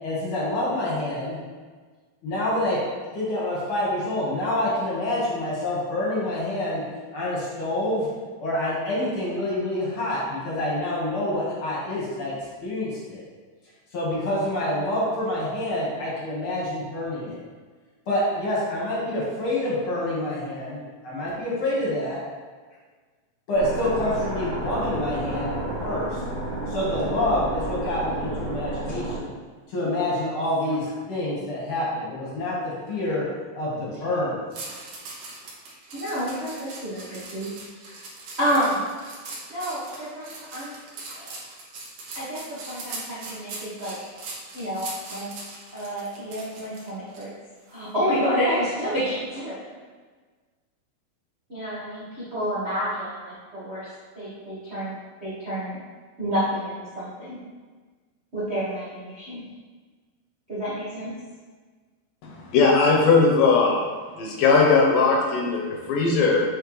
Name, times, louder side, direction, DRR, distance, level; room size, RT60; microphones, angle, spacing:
voice 1, 0.0-1.4 2.2-2.8 3.1-6.8 7.1-8.1 8.4-12.4 12.6-13.2 13.9-17.4 18.1-20.8 21.0-22.2 23.5-25.5 25.8-26.2 26.7-29.3 29.7-33.3 33.6-34.4, left 1 dB, 50° left, -6 dB, 1.9 m, -27 dB
sound 1, 23.5-29.2, right 1 dB, 45° right, 1.9 m, -31 dB
sound 2, 34.5-47.2 47.7-47.9, right 3 dB, 60° right, 1.7 m, -40 dB
voice 2, 35.6-37.5 37.8-37.9 38.4-38.9 39.5-40.7 41.1-41.4 42.1-43.9 44.5-45.3 45.7-47.3 47.7-49.5 51.5-55.8 56.2-57.4 58.3-59.4 60.5-61.1, equal, 80° right, -11 dB, 0.5 m, -29 dB
voice 3, 62.2-63.8 64.2-66.4, left 4 dB, 75° left, -1 dB, 2.4 m, -19 dB
8.1 x 4.5 x 3.2 m, 1.4 s
omnidirectional pair, 4.2 m